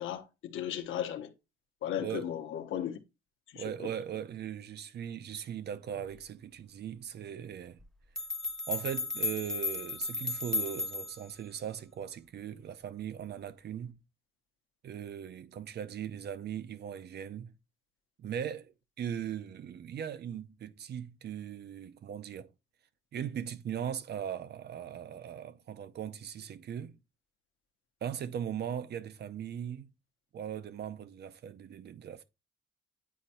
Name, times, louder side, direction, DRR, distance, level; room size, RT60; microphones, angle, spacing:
voice 1, 0.0-1.3 1.8-3.0 3.5-3.6, left 10 dB, 80° left, 1.0 m, -35 dB
voice 2, 2.0-2.3 3.5-7.8 8.7-14.0 14.8-17.5 18.2-18.7 19.0-22.5 23.1-27.0 28.0-29.9 30.3-32.2, right 9 dB, 55° right, 0.7 m, -39 dB
sound 1, 7.8-7.9 8.2-11.3, left 3 dB, ahead, 0.7 m, -34 dB
9.4 x 4.1 x 2.6 m
cardioid pair, 90°, 20 cm